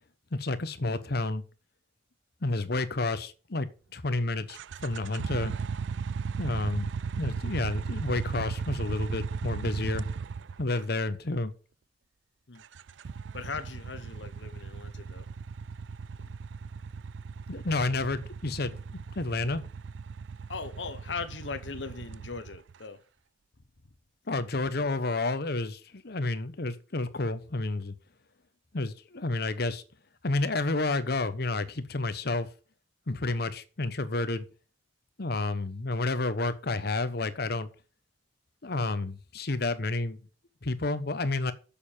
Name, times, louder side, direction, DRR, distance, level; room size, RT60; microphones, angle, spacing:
voice 1, 0.3-1.4 2.4-5.5 6.4-6.9 7.1-10.0 10.6-11.5 17.5-18.8 19.1-19.6 24.3-27.9 28.7-29.8 30.2-32.5 33.1-34.5 35.2-37.7 38.6-40.2 40.6-41.5, left 2 dB, 60° left, 1.0 m, -30 dB
sound 1, 4.5-10.9 12.6-22.7, right 5 dB, 85° right, 0.4 m, -36 dB
voice 2, 13.3-15.3 16.2-16.3 20.5-23.0, left 4 dB, 80° left, 1.2 m, -39 dB
7.0 x 6.8 x 7.2 m
head